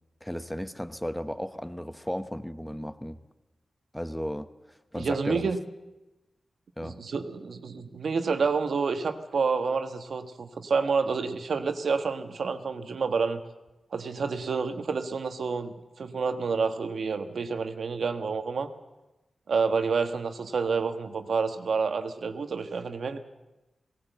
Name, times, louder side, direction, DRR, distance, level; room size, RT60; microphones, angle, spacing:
voice 1, 0.2-3.2 3.9-5.5 6.8-7.0, equal, 5° left, 11 dB, 1.0 m, -35 dB
voice 2, 5.0-5.6 6.8-13.4 13.9-18.7 19.5-23.2, right 5 dB, 80° right, 8 dB, 1.3 m, -29 dB
19.0 x 17.5 x 8.0 m, 1.0 s
wide cardioid pair, 90°, 0 cm